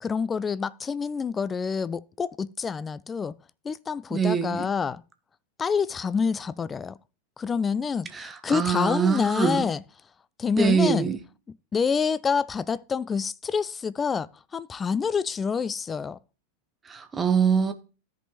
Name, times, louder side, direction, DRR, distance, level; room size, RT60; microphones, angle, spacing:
voice 1, 0.0-3.4 3.6-5.0 5.6-7.0 7.4-9.8 10.4-11.1 11.7-16.2, left 6 dB, 20° left, 0.3 m, -27 dB
voice 2, 4.1-4.7 8.1-9.7 10.5-11.2 16.8-17.7, right 6 dB, 15° right, 0.8 m, -24 dB
14.0 x 5.2 x 2.9 m
figure-of-eight pair, 90°, 0 cm